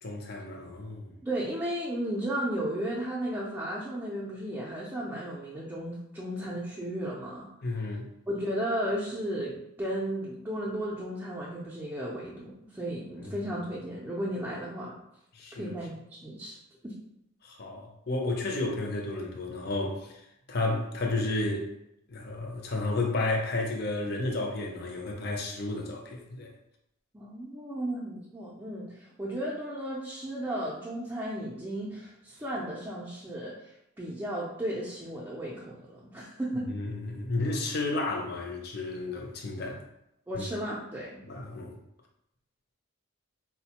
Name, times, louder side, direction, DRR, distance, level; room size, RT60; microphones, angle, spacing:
voice 1, 0.0-1.1 7.6-8.1 13.2-13.3 15.4-15.8 17.4-20.1 20.5-21.7 22.1-26.5 36.7-39.8 40.3-40.4 41.3-41.7, left 2 dB, 50° left, 0 dB, 0.5 m, -32 dB
voice 2, 1.2-7.5 7.9-8.0 8.3-15.0 15.5-16.6 16.8-17.0 27.1-33.7 34.0-36.7 40.3-41.2, right 1 dB, 10° right, -6 dB, 0.4 m, -34 dB
4.0 x 2.1 x 2.8 m, 0.80 s
head